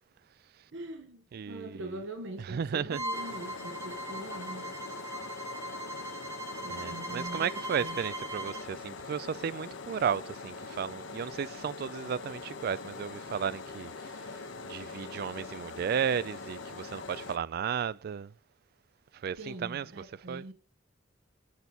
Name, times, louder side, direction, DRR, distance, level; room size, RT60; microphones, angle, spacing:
voice 1, 0.7-4.8 6.6-7.5 7.8-8.0 19.4-20.5, right 1 dB, 75° right, 0.9 m, -43 dB
voice 2, 1.3-1.9 2.5-3.0 6.7-18.3 19.1-19.9 20.3-20.4, right 7 dB, 55° right, 0.3 m, -34 dB
Bowed string instrument, 2.9-8.7, right 1 dB, 15° right, 0.8 m, -39 dB
sound 1, 3.1-17.4, left 4 dB, 80° left, 0.8 m, -43 dB
6.8 x 6.2 x 4.2 m
head